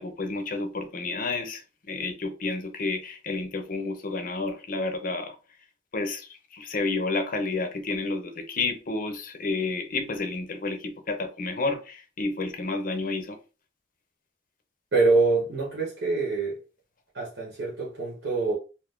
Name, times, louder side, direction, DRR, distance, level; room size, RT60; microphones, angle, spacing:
voice 1, 0.0-5.4 5.9-13.4, left 3 dB, 50° left, 0.6 m, -30 dB
voice 2, 14.9-16.6 17.1-18.6, right 3 dB, 70° right, 1.0 m, -25 dB
2.6 x 2.4 x 3.5 m
head